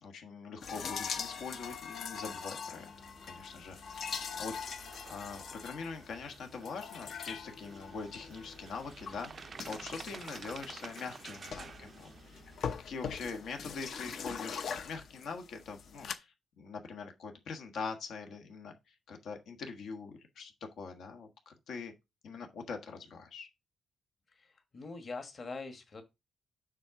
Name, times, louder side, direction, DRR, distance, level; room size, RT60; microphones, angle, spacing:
voice 1, 0.0-2.9 3.2-4.1 4.4-4.5 5.1-12.4 12.8-21.9 22.2-23.5, left 4 dB, 70° left, 1.4 m, -43 dB
sound 1, 0.6-16.2, left 6 dB, 55° left, 0.7 m, -43 dB
sound 2, 1.1-12.6, right 5 dB, 30° right, 0.4 m, -52 dB
voice 2, 24.3-26.0, left 3 dB, 30° left, 1.4 m, -43 dB
7.4 x 3.8 x 5.8 m
wide cardioid pair, 180°, 0 cm